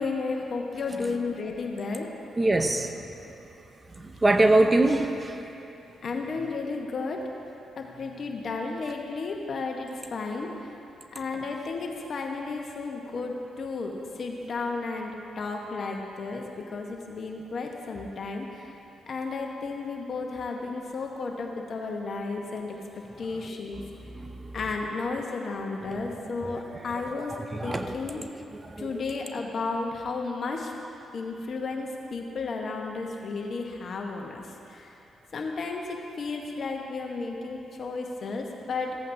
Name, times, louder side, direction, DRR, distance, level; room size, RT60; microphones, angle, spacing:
voice 1, 0.0-2.1 6.0-7.2 7.8-10.7 11.1-18.8 19.1-22.8 23.2-23.8 24.5-27.4 27.6-28.2 28.8-30.7 31.1-35.0 35.3-39.0, left 3 dB, 60° left, 1 dB, 1.1 m, -33 dB
voice 2, 2.4-2.9 4.2-5.3 24.2-24.3 25.9-26.0 27.6-28.0 28.7-28.9, right 2 dB, 25° right, 6 dB, 0.6 m, -22 dB
15.0 x 8.3 x 2.7 m, 2.9 s
cardioid pair, 65°, 0 cm